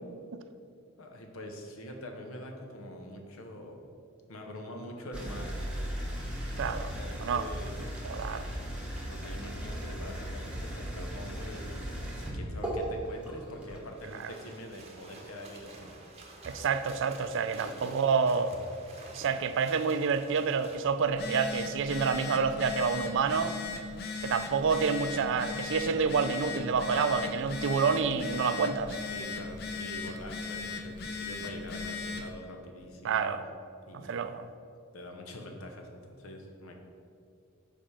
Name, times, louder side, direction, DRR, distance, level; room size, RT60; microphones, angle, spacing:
voice 1, 1.0-3.8 4.3-5.5 6.7-7.7 9.0-15.9 17.5-17.9 29.1-33.4 33.9-34.1 34.9-36.8, left 1 dB, 75° left, 3 dB, 0.9 m, -44 dB
sound 1, 5.1-13.8, equal, 5° right, 1.1 m, -37 dB
voice 2, 6.6-6.9 7.2-7.5 8.0-8.5 14.2-14.3 16.5-18.5 19.1-23.5 24.2-29.0 33.0-33.4 34.0-34.5, right 5 dB, 60° right, 11 dB, 0.4 m, -28 dB
sound 2, 13.7-21.2 23.5-25.4, right 2 dB, 30° right, 0.8 m, -50 dB
Telephone, 21.1-32.3, left 4 dB, 50° left, 0.6 m, -38 dB
5.1 x 5.0 x 5.6 m, 2.4 s
head